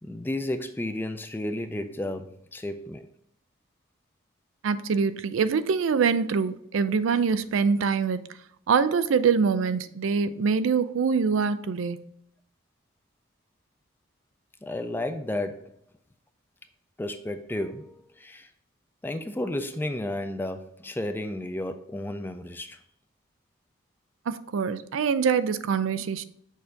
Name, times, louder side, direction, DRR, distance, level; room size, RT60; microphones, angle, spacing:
voice 1, 0.0-3.1 14.6-15.8 17.0-18.5 19.0-22.8, left 1 dB, 10° left, 0.3 m, -32 dB
voice 2, 4.6-8.3 8.7-12.0 24.3-26.2, right 5 dB, 85° right, 0.4 m, -24 dB
6.4 x 2.6 x 5.6 m
head